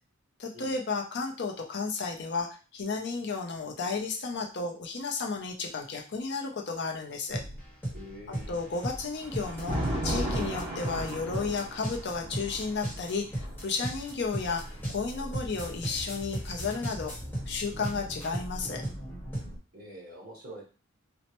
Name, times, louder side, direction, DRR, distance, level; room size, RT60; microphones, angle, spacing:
voice 1, 0.4-7.4 8.5-9.8 10.0-17.1 17.5-18.8, left 4 dB, 50° left, 1 dB, 0.5 m, -33 dB
sound 1, 7.3-19.6, right 1 dB, 10° left, 1.0 m, -37 dB
voice 2, 7.9-8.5 19.7-20.6, equal, 40° right, -2 dB, 1.2 m, -45 dB
Thunder, 8.4-15.6 16.7-18.4, equal, 25° right, 1.3 m, -37 dB
4.2 x 2.0 x 2.9 m, 0.35 s
head